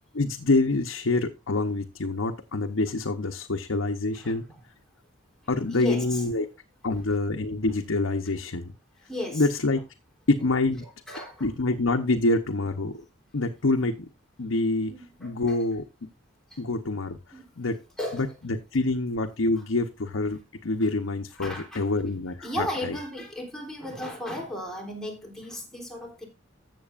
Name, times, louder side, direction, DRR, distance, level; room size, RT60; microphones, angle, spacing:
voice 1, 0.1-4.4 5.5-6.5 6.8-8.7 9.3-9.8 10.3-10.8 11.4-13.0 13.3-14.1 14.4-14.9 15.2-15.8 16.6-17.2 17.6-17.8 18.2-22.9, left 2 dB, 85° left, 0.9 m, -26 dB
voice 2, 4.1-4.6 5.7-6.3 9.1-9.5 10.8-11.5 14.9-15.7 16.5-16.6 17.3-17.5 18.0-18.4 19.6-19.7 21.4-21.9 22.4-26.3, left 1 dB, 5° left, 3.4 m, -35 dB
14.5 x 7.8 x 2.5 m
head